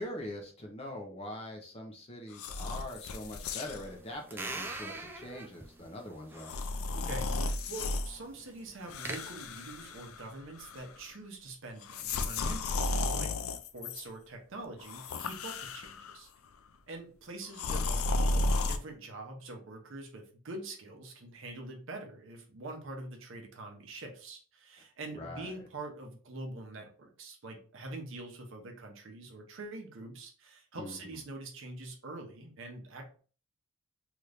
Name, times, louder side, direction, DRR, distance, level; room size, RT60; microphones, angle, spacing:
voice 1, 0.0-6.6 25.1-25.5 30.7-31.2, left 1 dB, 25° left, 1 dB, 0.6 m, -43 dB
sound 1, 2.3-3.9 4.6-4.8 6.4-8.1 8.9-10.3 10.6-11.0 11.8-14.1 14.8-16.2 17.5-18.8, left 2 dB, 75° left, 0.4 m, -33 dB
sound 2, 3.8-9.2, right 2 dB, 10° right, 0.3 m, -44 dB
voice 2, 6.9-16.3 16.9-33.2, right 2 dB, 60° right, 2 dB, 0.8 m, -45 dB
2.9 x 2.5 x 3.3 m, 0.40 s
head